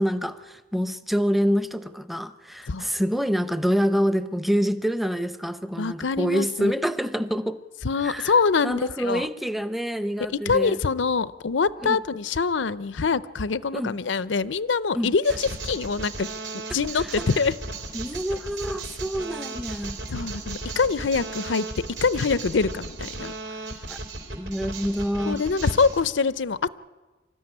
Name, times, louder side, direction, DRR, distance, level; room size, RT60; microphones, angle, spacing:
voice 1, 0.0-7.6 8.0-8.3 8.6-10.8 11.8-12.0 13.7-14.0 14.9-15.1 17.9-20.0 23.9-24.0 24.3-25.4, equal, ahead, 11 dB, 0.6 m, -26 dB
voice 2, 5.8-6.7 7.8-9.3 10.5-16.3 16.7-17.5 20.1-21.7 22.0-23.3 25.2-26.7, left 4 dB, 80° left, 17 dB, 0.6 m, -24 dB
sound 1, 15.2-26.0, right 3 dB, 70° right, 3.2 m, -36 dB
25.0 x 13.5 x 9.8 m, 1.3 s
head